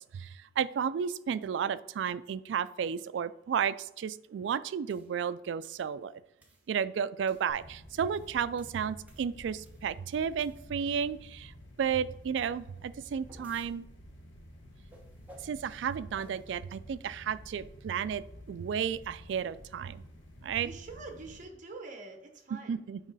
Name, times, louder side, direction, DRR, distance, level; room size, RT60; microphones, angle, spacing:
voice 1, 0.0-6.2 6.7-11.5 11.8-13.8 15.4-20.0 20.4-20.7 22.7-23.0, right 7 dB, 75° right, 16 dB, 0.3 m, -33 dB
sound 1, 4.9-5.1 5.6-5.9 6.4-6.7 7.3-7.5 8.0-10.0 10.4-10.9 12.8-13.7 14.9-15.6 16.1-16.5, equal, 10° right, 0.9 m, -58 dB
sound 2, 7.5-21.4, equal, 80° left, 1.0 m, -52 dB
voice 2, 20.6-22.8, right 3 dB, 45° right, 4 dB, 1.0 m, -45 dB
8.9 x 3.1 x 4.0 m, 0.83 s
head